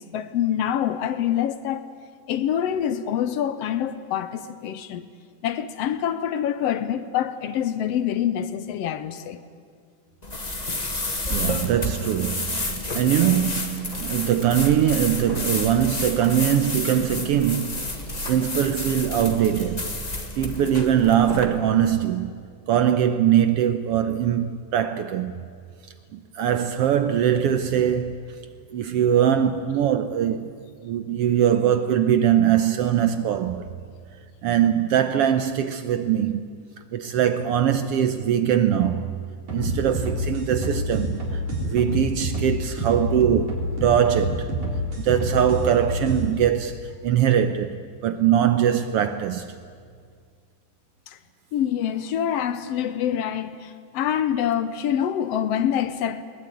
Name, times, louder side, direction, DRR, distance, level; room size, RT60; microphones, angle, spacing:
voice 1, 0.0-1.9 2.3-5.1 5.4-9.4 51.1-51.2 51.5-56.2, left 10 dB, 70° left, 1.7 m, -26 dB
sound 1, 10.2-21.5, left 2 dB, 20° left, 1.1 m, -30 dB
voice 2, 11.3-17.8 18.3-19.9 20.4-22.4 22.7-25.3 26.1-28.3 28.7-30.5 30.8-33.7 34.4-36.5 36.9-39.2 39.5-44.5 45.0-49.5, right 9 dB, 75° right, 1.4 m, -22 dB
sound 2, 39.5-46.2, equal, 55° right, 4.9 m, -27 dB
20.5 x 20.0 x 9.3 m
omnidirectional pair, 3.4 m